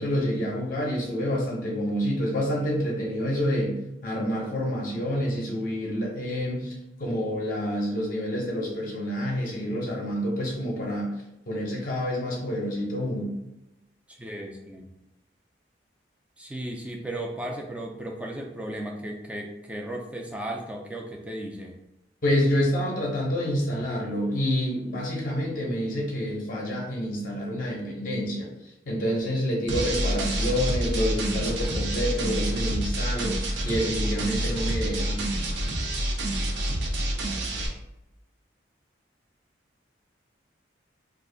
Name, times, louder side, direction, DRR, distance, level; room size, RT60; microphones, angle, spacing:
voice 1, 0.0-3.8 4.0-11.1 11.5-13.4 22.2-28.5 28.9-35.3, equal, 50° left, -2 dB, 0.6 m, -28 dB
voice 2, 14.1-14.8 16.4-21.8, right 1 dB, 5° right, 1 dB, 0.3 m, -35 dB
sound 1, 29.7-37.7, right 1 dB, 75° right, 0.6 m, -27 dB
2.5 x 2.3 x 3.7 m, 0.90 s
head